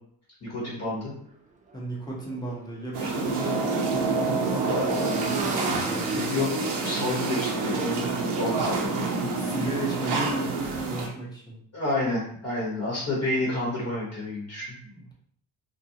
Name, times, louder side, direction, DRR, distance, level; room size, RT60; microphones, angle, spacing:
voice 1, 0.4-1.1 4.7-4.9 6.1-9.1 11.7-14.8, left 2 dB, 40° left, -5 dB, 1.1 m, -30 dB
Motorcycle / Engine, 1.2-1.3 1.6-8.8, right 3 dB, 20° right, 0.3 m, -37 dB
voice 2, 1.7-6.3 9.3-11.6 14.8-15.1, right 2 dB, 10° left, -4 dB, 0.9 m, -35 dB
sound 1, 2.9-11.1, right 3 dB, 85° right, 0.6 m, -28 dB
2.4 x 2.3 x 2.7 m, 0.63 s
cardioid pair, 100°, 40 cm